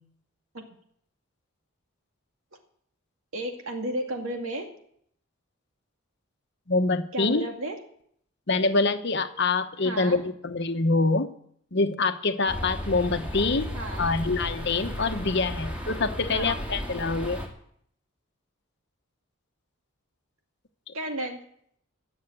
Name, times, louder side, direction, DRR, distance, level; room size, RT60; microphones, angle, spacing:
voice 1, 3.3-4.7 7.1-7.8 9.8-10.2 13.7-14.1 16.3-16.5 20.9-21.4, right 1 dB, 70° right, 3 dB, 2.2 m, -33 dB
voice 2, 6.7-7.5 8.5-11.3 11.7-13.7 14.0-17.4 20.9-21.0, left 3 dB, 50° left, 9 dB, 1.0 m, -25 dB
sound 1, 12.5-17.5, left 1 dB, 5° right, 2.3 m, -34 dB
17.5 x 7.3 x 8.9 m, 0.68 s
head